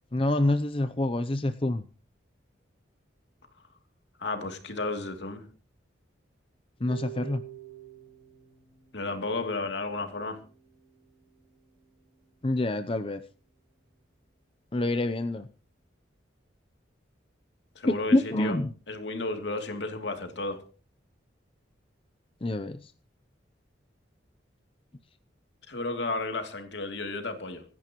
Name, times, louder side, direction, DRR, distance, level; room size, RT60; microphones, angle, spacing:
voice 1, 0.1-1.8 6.8-7.4 12.4-13.2 14.7-15.5 17.8-18.7 22.4-22.9, left 1 dB, 30° left, 10 dB, 0.6 m, -27 dB
voice 2, 4.2-5.4 8.9-10.4 17.7-18.6 18.9-20.6 25.7-27.6, left 2 dB, 70° left, 5 dB, 2.8 m, -33 dB
Harp, 6.9-12.9, right 13 dB, 55° right, 6.5 m, -49 dB
25.5 x 11.0 x 3.0 m, 0.37 s
head